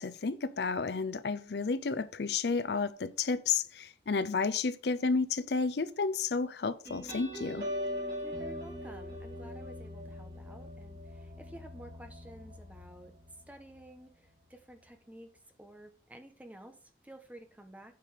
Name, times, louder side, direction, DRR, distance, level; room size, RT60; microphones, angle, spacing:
voice 1, 0.0-7.7, left 4 dB, 65° left, 0.5 m, -31 dB
sound 1, 6.8-14.0, equal, 60° right, 3.4 m, -41 dB
voice 2, 8.2-17.9, right 1 dB, 10° right, 1.0 m, -52 dB
8.9 x 5.1 x 5.0 m
head